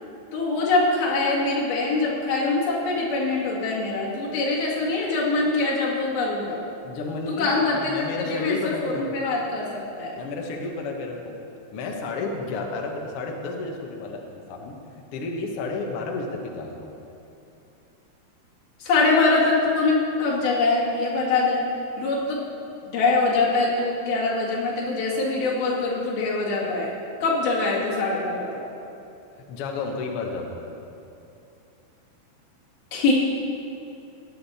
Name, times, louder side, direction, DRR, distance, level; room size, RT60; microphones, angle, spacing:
voice 1, 0.3-6.6 7.4-10.2 18.8-21.6 22.0-22.5 22.9-26.9 27.2-28.6 32.9-33.1, left 3 dB, 65° left, -5 dB, 3.8 m, -23 dB
voice 2, 6.8-9.2 10.2-11.4 11.7-14.8 15.1-16.9 29.5-30.6, left 3 dB, 90° left, 1 dB, 1.3 m, -31 dB
17.5 x 10.0 x 4.3 m, 2.7 s
omnidirectional pair, 4.8 m